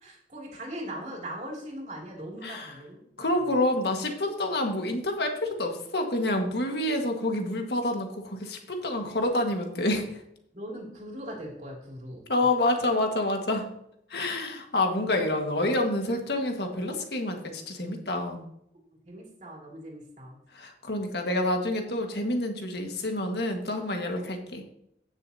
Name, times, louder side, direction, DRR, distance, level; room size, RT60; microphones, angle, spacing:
voice 1, 0.0-3.1 10.5-12.2 19.0-20.4, equal, 40° right, -1 dB, 2.7 m, -40 dB
voice 2, 2.4-2.8 3.2-10.2 12.3-13.7 14.1-18.4 20.5-24.6, left 1 dB, 70° left, 3 dB, 1.7 m, -28 dB
16.5 x 6.6 x 2.8 m, 0.74 s
head